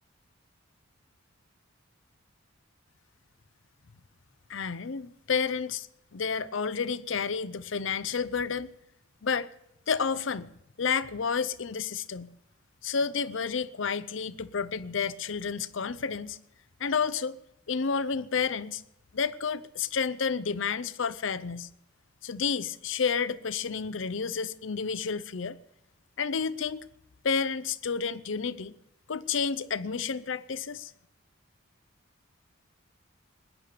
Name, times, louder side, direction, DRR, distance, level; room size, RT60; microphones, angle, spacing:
voice 1, 4.5-5.9 6.1-8.7 9.2-9.5 9.9-10.5 10.8-12.3 12.8-16.4 16.8-17.4 17.7-18.8 19.1-21.7 22.2-25.6 26.2-26.9 27.2-28.7 29.1-30.9, left 5 dB, 65° left, 0.6 m, -30 dB
20.5 x 10.0 x 6.7 m
head